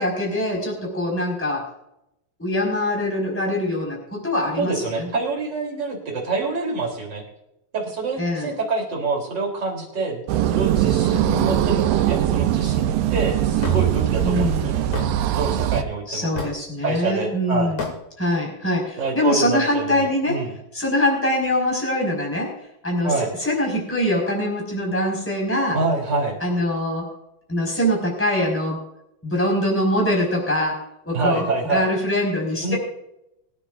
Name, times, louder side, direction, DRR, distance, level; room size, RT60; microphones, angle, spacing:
voice 1, 0.0-1.7 2.4-5.1 8.2-8.5 14.2-14.8 16.1-17.9 18.2-20.4 20.7-22.5 22.8-25.8 26.4-27.1 27.5-28.8 29.2-32.8, left 1 dB, 5° left, -1 dB, 4.7 m, -23 dB
voice 2, 4.6-7.2 7.7-14.9 15.4-16.3 16.8-17.7 19.0-20.5 23.0-23.3 25.7-26.4 31.1-31.9 32.6-32.8, right 3 dB, 30° right, -1 dB, 3.7 m, -26 dB
sound 1, 10.3-15.8, right 12 dB, 80° right, 2.4 m, -21 dB
Hammer / Wood, 13.6-13.8 14.9-15.1 16.4-16.6 17.8-18.0, left 4 dB, 45° left, 3.5 m, -29 dB
24.0 x 9.9 x 2.5 m, 0.83 s
omnidirectional pair, 4.2 m